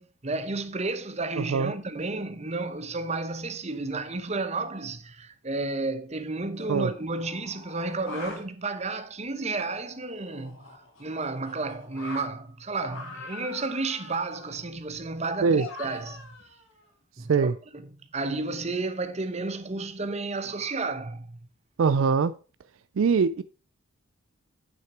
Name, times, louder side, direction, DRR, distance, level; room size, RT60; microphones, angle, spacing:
voice 1, 0.0-16.4 17.2-17.8 18.1-21.5, right 3 dB, 30° right, 0.9 m, -32 dB
voice 2, 1.4-1.7 6.7-6.9 15.4-15.6 17.3-17.5 21.8-22.3 23.0-23.4, right 5 dB, 70° right, 0.4 m, -22 dB
sound 1, 6.5-8.4 9.5-12.2 12.7-14.6 15.5-16.8, left 3 dB, 70° left, 2.3 m, -43 dB
9.2 x 5.9 x 4.5 m
head